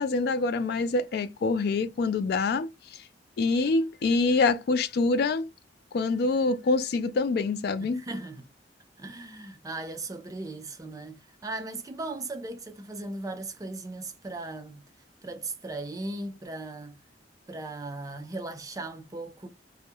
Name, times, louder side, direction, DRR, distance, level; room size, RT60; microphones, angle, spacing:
voice 1, 0.0-3.0 3.4-5.5 5.9-8.0, left 3 dB, 60° left, 0.3 m, -26 dB
voice 2, 7.8-8.5 9.0-14.8 15.2-17.0 17.5-19.5, right 2 dB, 20° right, 0.4 m, -37 dB
2.3 x 2.1 x 2.9 m
head